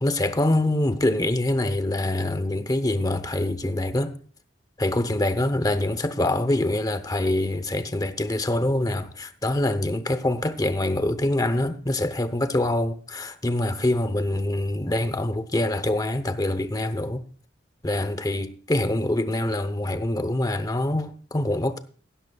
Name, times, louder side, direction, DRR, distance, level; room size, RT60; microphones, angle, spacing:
voice 1, 0.0-4.2 4.8-17.2 17.8-21.8, left 1 dB, 20° left, 0.8 m, -25 dB
16.0 x 12.5 x 2.3 m
head